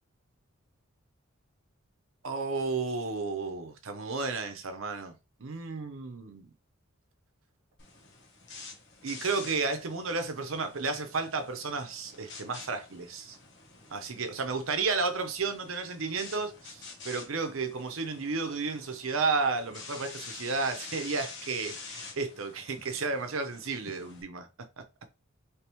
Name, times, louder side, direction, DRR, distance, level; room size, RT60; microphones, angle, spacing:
voice 1, 2.2-5.1 5.4-6.5 9.0-13.4 13.9-24.9, right 4 dB, 85° right, 0.8 m, -32 dB
sound 1, 7.8-24.2, left 4 dB, 60° left, 1.3 m, -48 dB
3.4 x 3.2 x 3.1 m
head